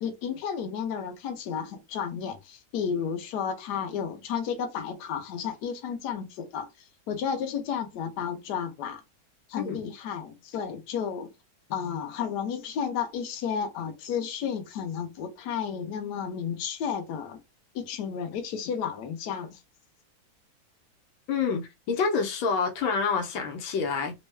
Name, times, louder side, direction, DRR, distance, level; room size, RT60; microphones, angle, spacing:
voice 1, 0.0-6.7 7.1-9.0 9.5-11.3 11.7-17.4 17.7-19.6, left 7 dB, 65° left, 1.3 m, -32 dB
voice 2, 21.3-24.1, left 5 dB, 85° left, 1.5 m, -27 dB
3.5 x 2.2 x 3.1 m
omnidirectional pair, 2.1 m